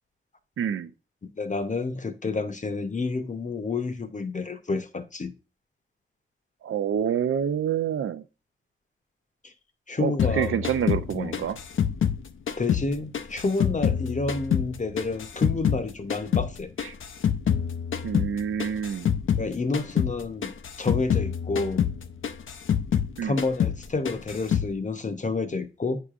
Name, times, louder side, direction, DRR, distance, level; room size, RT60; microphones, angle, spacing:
voice 1, 0.6-0.9 6.6-8.2 10.0-11.6 18.0-19.1 23.2-23.4, right 8 dB, 75° right, 0.5 m, -27 dB
voice 2, 1.4-5.3 9.4-9.5 9.9-10.6 11.1-11.4 12.6-16.7 19.3-20.5 20.8-21.9 23.2-26.0, left 3 dB, 35° left, 0.7 m, -29 dB
sound 1, 10.2-12.9 13.1-15.8 16.1-19.5 19.7-20.2 20.4-23.1 23.4-23.8 24.1-24.7, left 8 dB, 70° left, 0.5 m, -26 dB
8.0 x 4.9 x 2.4 m
cardioid pair, 75°, 21 cm